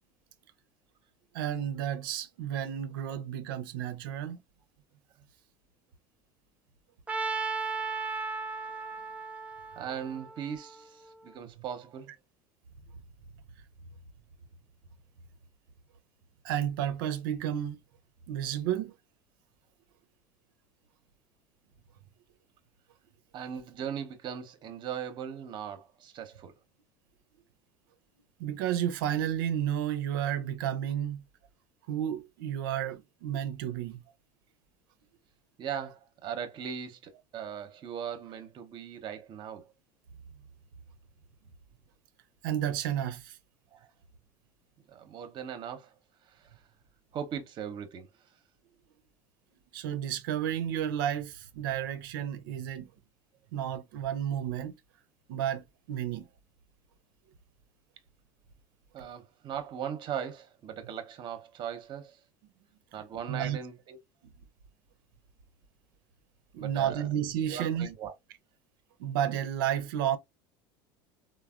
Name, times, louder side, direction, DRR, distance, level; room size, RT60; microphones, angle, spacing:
voice 1, 1.3-4.4 16.4-17.8 18.3-18.9 28.4-31.2 31.9-34.0 42.4-43.4 49.7-52.9 53.5-54.8 55.3-56.3 63.3-63.6 66.5-67.9 69.0-70.2, right 10 dB, 85° right, 0.5 m, -31 dB
Trumpet, 7.1-11.1, right 4 dB, 10° right, 0.4 m, -36 dB
voice 2, 9.8-12.1 23.3-26.5 35.6-39.6 43.7-43.9 44.9-45.9 46.3-46.4 47.1-48.1 58.9-62.2 62.9-64.0 66.6-67.1 67.5-68.1, right 8 dB, 45° right, 0.7 m, -39 dB
3.3 x 2.1 x 2.3 m
supercardioid pair, 105°, 11 cm